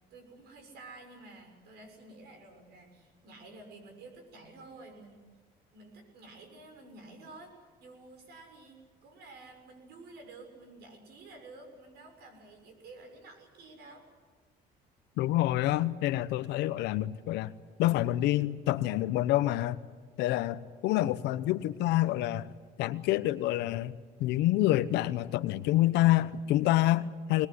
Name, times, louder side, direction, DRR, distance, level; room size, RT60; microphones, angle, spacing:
voice 1, 0.1-5.2 5.7-14.1, right 2 dB, 75° right, 5 dB, 6.6 m, -51 dB
voice 2, 15.2-17.5 17.8-19.8 20.2-22.5 22.8-23.9 24.2-27.5, left 15 dB, 90° left, 14 dB, 1.0 m, -27 dB
21.5 x 20.5 x 9.7 m, 1.5 s
cardioid pair, 110°, 17 cm